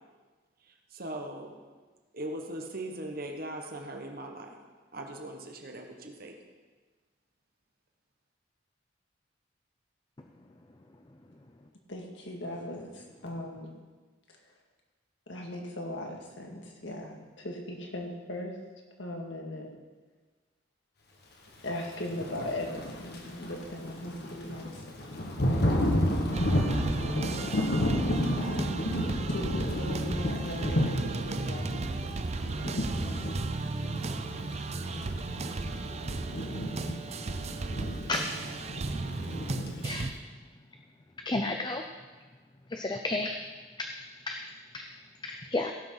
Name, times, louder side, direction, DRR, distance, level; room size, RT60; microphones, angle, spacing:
voice 1, 0.9-1.6 2.1-4.6 4.9-6.3, right 1 dB, 50° right, 3 dB, 1.5 m, -39 dB
voice 2, 11.9-13.7 14.3-14.4 15.3-18.5 19.0-19.7 21.6-25.1 25.4-26.0 26.9-29.0 29.3-31.7, left 1 dB, 75° left, 1 dB, 2.0 m, -39 dB
Thunder / Rain, 22.0-40.1, equal, 60° left, 1.6 m, -32 dB
sound 1, 26.3-40.1, right 3 dB, 35° right, 0.5 m, -35 dB
voice 3, 41.3-41.8 42.7-43.4 44.3-44.4 45.5-45.7, left 2 dB, 25° left, 4 dB, 0.5 m, -30 dB
16.5 x 6.2 x 5.8 m, 1.4 s
head